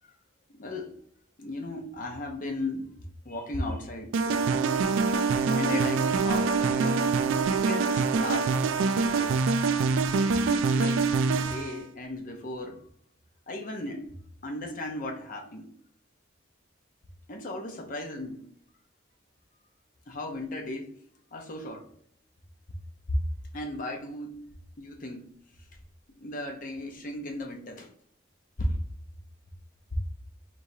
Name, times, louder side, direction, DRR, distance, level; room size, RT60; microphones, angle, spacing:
voice 1, 0.5-0.9 1.4-2.9 3.2-4.4 5.5-7.1 7.5-9.4 10.1-12.8 13.5-14.0 14.4-15.7 17.3-18.5 20.1-20.9 21.3-21.9 23.1-23.2 23.5-24.4 24.8-25.3 26.2-27.9 28.6-28.8, left 1 dB, 45° left, 0.7 m, -35 dB
sound 1, 4.1-11.8, right 4 dB, 80° right, 0.3 m, -25 dB
4.6 x 3.0 x 2.7 m
head